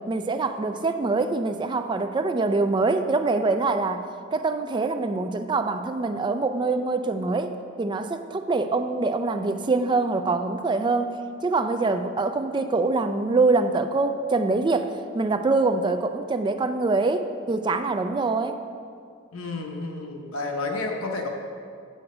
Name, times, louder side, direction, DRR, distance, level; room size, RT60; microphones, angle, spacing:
voice 1, 0.1-7.5 7.8-11.1 11.4-18.6, right 3 dB, 20° right, 8 dB, 0.3 m, -24 dB
voice 2, 19.3-21.3, left 3 dB, 85° left, 2 dB, 1.0 m, -30 dB
7.8 x 7.6 x 4.9 m, 2.2 s
head